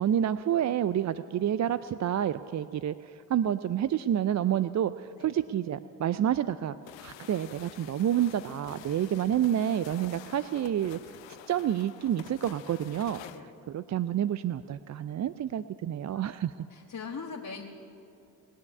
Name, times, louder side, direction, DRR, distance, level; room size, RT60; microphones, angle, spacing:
voice 1, 0.0-6.8 7.0-11.1 11.5-13.2 13.7-16.5, right 10 dB, 40° right, 14 dB, 0.4 m, -29 dB
sound 1, 6.9-13.4, left 13 dB, 65° left, 0.7 m, -49 dB
voice 2, 16.7-17.6, left 5 dB, 40° left, -1 dB, 1.6 m, -41 dB
20.5 x 7.2 x 9.8 m, 2.7 s
hypercardioid pair, 45°, 48 cm